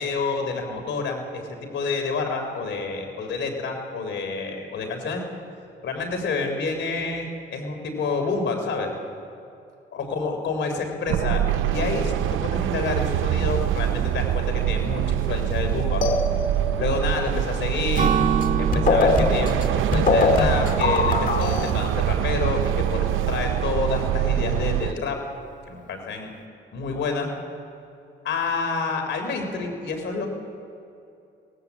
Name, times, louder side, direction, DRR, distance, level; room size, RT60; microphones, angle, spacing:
voice 1, 0.0-5.2 5.8-8.9 9.9-16.0 16.8-18.1 18.6-25.2 25.7-26.3 26.7-27.3 28.2-30.3, left 4 dB, 70° left, 4 dB, 3.8 m, -28 dB
sound 1, 11.1-24.9, right 11 dB, 85° right, 0.8 m, -24 dB
sound 2, 16.0-16.8 18.4-18.5 18.7-21.7, left 4 dB, 45° left, 1.9 m, -22 dB
Acoustic guitar / Strum, 17.9-21.6, right 6 dB, 40° right, 1.7 m, -28 dB
22.0 x 18.0 x 8.4 m, 2.6 s
cardioid pair, 90°, 20 cm